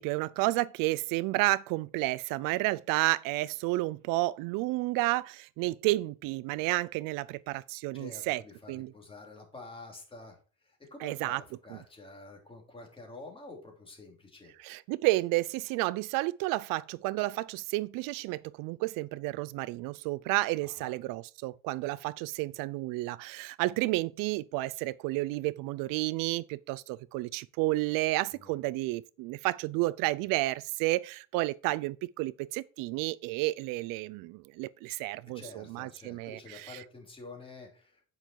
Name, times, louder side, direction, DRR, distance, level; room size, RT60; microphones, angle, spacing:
voice 1, 0.0-8.4 8.7-8.9 11.0-11.4 11.7-11.8 14.6-36.8, right 19 dB, 85° right, 0.5 m, -31 dB
voice 2, 7.9-14.5 20.6-20.9 28.3-28.6 35.3-38.0, left 2 dB, 15° left, 3.1 m, -48 dB
9.2 x 5.8 x 4.5 m
cardioid pair, 130°, 32 cm